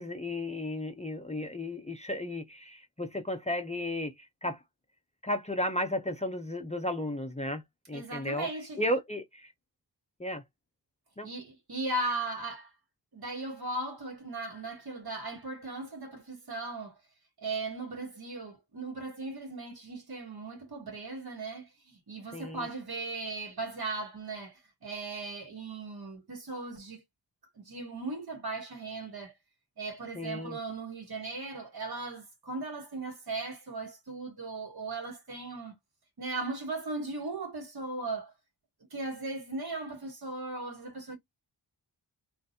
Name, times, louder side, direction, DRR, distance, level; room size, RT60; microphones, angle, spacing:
voice 1, 0.0-4.6 5.2-7.6 7.9-8.5 8.8-9.5 10.2-10.4 11.2-11.3 22.3-22.7 30.2-30.6, left 1 dB, 15° left, 0.5 m, -34 dB
voice 2, 7.9-8.8 11.2-12.7 13.1-17.0 17.4-27.0 27.7-29.3 29.8-35.7 36.2-38.3 38.9-41.2, right 2 dB, 60° right, 1.7 m, -37 dB
3.8 x 2.5 x 2.6 m
wide cardioid pair, 125°, 43 cm